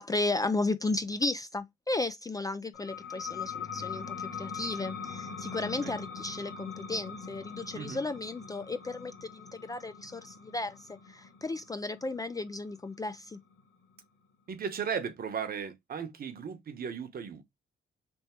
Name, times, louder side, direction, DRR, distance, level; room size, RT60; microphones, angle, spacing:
voice 1, 0.0-13.4, left 2 dB, 20° left, 0.4 m, -34 dB
sound 1, 2.7-14.0, left 6 dB, 80° left, 1.8 m, -42 dB
voice 2, 14.5-17.4, right 7 dB, 50° right, 1.0 m, -36 dB
3.5 x 2.8 x 4.3 m
cardioid pair, 90°, 20 cm